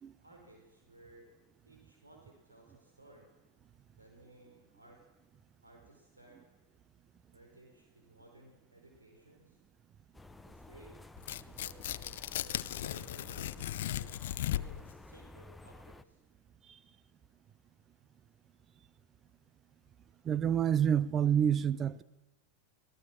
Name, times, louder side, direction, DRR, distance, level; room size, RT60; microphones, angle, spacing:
voice 1, 0.2-1.3 1.6-3.3 4.0-5.0 5.6-6.4 7.3-9.6 10.5-11.0 11.5-16.2, right 2 dB, 80° right, 4.8 m, -58 dB
sound 1, 10.1-16.0, left 2 dB, 5° left, 0.8 m, -53 dB
Tearing, 11.2-14.9, left 13 dB, 55° left, 0.7 m, -37 dB
voice 2, 20.2-22.0, right 9 dB, 25° right, 0.9 m, -28 dB
27.0 x 18.5 x 7.5 m
figure-of-eight pair, 90°, 0 cm